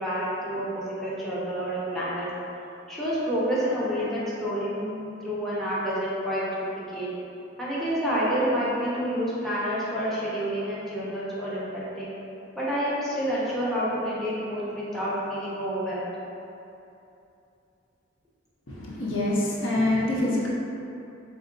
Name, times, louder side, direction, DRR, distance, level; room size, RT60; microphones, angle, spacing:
voice 1, 0.0-2.3 2.9-6.4 6.9-7.1 7.6-12.1 12.6-16.1, equal, ahead, -9 dB, 0.6 m, -28 dB
voice 2, 18.7-20.5, left 1 dB, 75° left, -4 dB, 0.6 m, -25 dB
4.0 x 2.7 x 2.6 m, 2.8 s
head